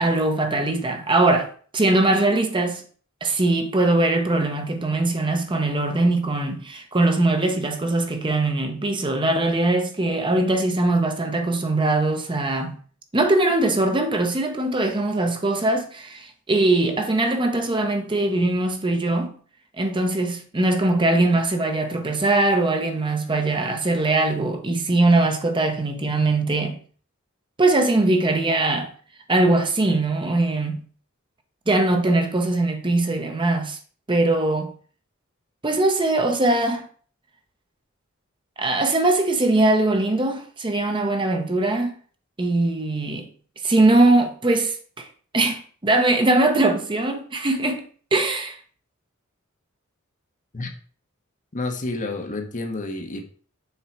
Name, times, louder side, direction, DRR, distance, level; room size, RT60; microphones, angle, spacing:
voice 1, 0.0-1.5 1.7-2.8 3.2-12.8 13.1-19.3 19.8-26.8 27.6-28.9 29.3-30.8 31.7-33.8 34.1-34.7 35.6-36.9 38.6-41.9 42.4-43.3 43.6-45.1 45.3-47.8 48.1-48.6, right 2 dB, 25° right, 0.8 m, -21 dB
voice 2, 51.5-53.3, left 2 dB, 40° left, 0.9 m, -29 dB
6.7 x 3.8 x 4.4 m
head